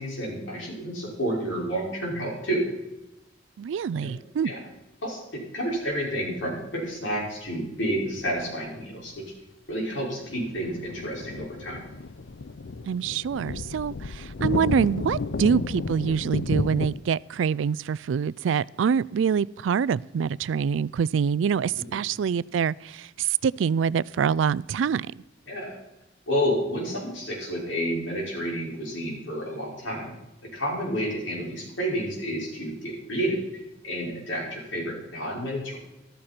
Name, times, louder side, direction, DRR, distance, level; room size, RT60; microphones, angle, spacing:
voice 1, 0.0-2.6 4.0-4.1 4.4-4.6 5.0-9.3 9.7-11.8 21.8-22.0 25.5-25.8 26.3-30.1 30.5-33.4 33.8-35.8, equal, 85° left, -2 dB, 5.3 m, -30 dB
voice 2, 3.6-4.5 12.9-25.1, right 7 dB, 80° right, 22 dB, 0.3 m, -25 dB
sound 1, 8.2-8.3 10.2-17.0, left 3 dB, 70° left, 0.5 m, -32 dB
13.5 x 13.5 x 4.4 m, 0.94 s
head